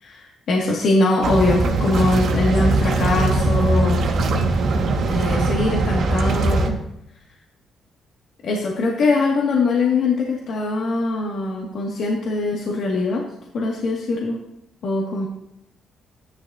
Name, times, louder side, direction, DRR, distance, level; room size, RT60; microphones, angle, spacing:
voice 1, 0.0-4.0 5.1-6.8 8.4-13.2 13.5-14.4 14.8-15.3, left 2 dB, 65° left, -3 dB, 2.3 m, -22 dB
sound 1, 1.2-6.7, right 2 dB, 70° right, 2.0 m, -20 dB
14.0 x 11.5 x 2.9 m, 0.80 s
cardioid pair, 90°, 0 cm